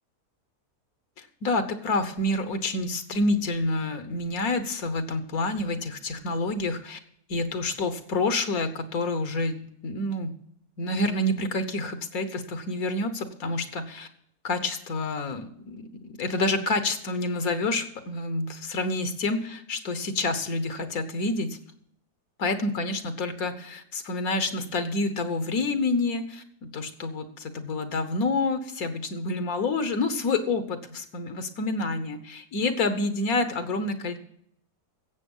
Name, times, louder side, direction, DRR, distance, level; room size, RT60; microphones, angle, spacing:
voice 1, 1.2-7.0 7.3-10.4 10.8-14.1 14.4-21.6 22.4-34.2, left 2 dB, 70° left, 9 dB, 1.5 m, -28 dB
16.0 x 7.5 x 5.4 m, 0.69 s
omnidirectional pair, 1.6 m